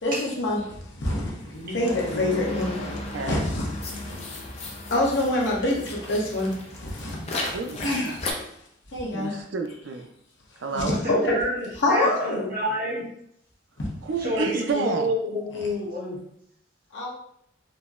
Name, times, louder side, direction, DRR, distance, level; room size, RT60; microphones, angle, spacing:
voice 1, 0.0-0.6 1.0-1.2 1.6-2.9 3.3-3.4 4.9-5.8 6.1-6.5 7.8-8.1 8.9-9.3 11.1-11.4 11.8-12.5 17.0-17.1, left 1 dB, 70° left, -3 dB, 0.8 m, -24 dB
sound 1, 1.4-8.3, left 2 dB, 35° left, 0.5 m, -35 dB
voice 2, 3.1-3.4 7.3-8.1 9.1-10.1 10.6-11.0 14.0-15.1, right 4 dB, 75° right, 5 dB, 0.4 m, -30 dB
voice 3, 11.2-13.1 14.2-16.2, equal, 50° right, -6 dB, 1.1 m, -29 dB
4.0 x 2.0 x 2.3 m, 0.73 s
head